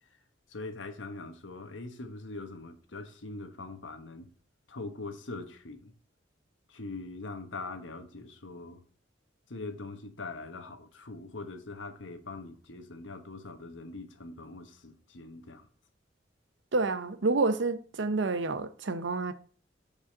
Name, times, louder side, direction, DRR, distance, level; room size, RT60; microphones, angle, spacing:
voice 1, 0.5-4.3 4.7-5.9 6.7-8.8 9.5-15.7, left 3 dB, 85° left, 1.2 m, -42 dB
voice 2, 16.7-19.3, right 3 dB, 75° right, 0.7 m, -28 dB
5.5 x 5.1 x 6.5 m
head